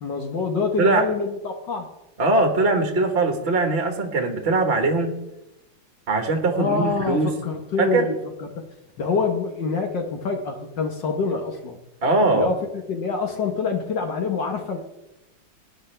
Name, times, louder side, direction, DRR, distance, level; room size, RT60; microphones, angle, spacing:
voice 1, 0.0-1.9 6.5-8.2 8.6-8.7 9.0-11.8 12.3-12.5 12.9-14.8, left 4 dB, 60° left, 3 dB, 1.7 m, -26 dB
voice 2, 2.2-5.1 6.1-7.3 7.8-8.1 12.0-12.5, right 3 dB, 35° right, 4 dB, 1.3 m, -21 dB
18.5 x 10.0 x 3.3 m, 0.95 s
omnidirectional pair, 2.3 m